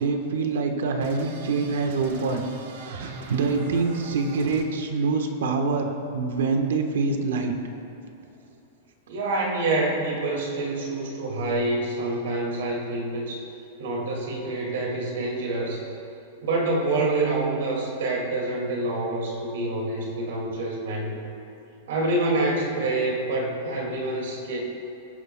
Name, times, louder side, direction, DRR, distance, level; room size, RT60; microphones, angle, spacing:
voice 1, 0.0-2.5 2.8-7.5, right 4 dB, 85° right, 5 dB, 1.1 m, -25 dB
sound 1, 1.0-4.7, right 3 dB, 55° right, 1.0 m, -39 dB
voice 2, 9.1-13.5 13.8-15.8 16.4-21.1 21.9-24.6, right 2 dB, 70° right, -2 dB, 2.2 m, -27 dB
18.5 x 9.6 x 2.2 m, 2.9 s
supercardioid pair, 180°, 0 cm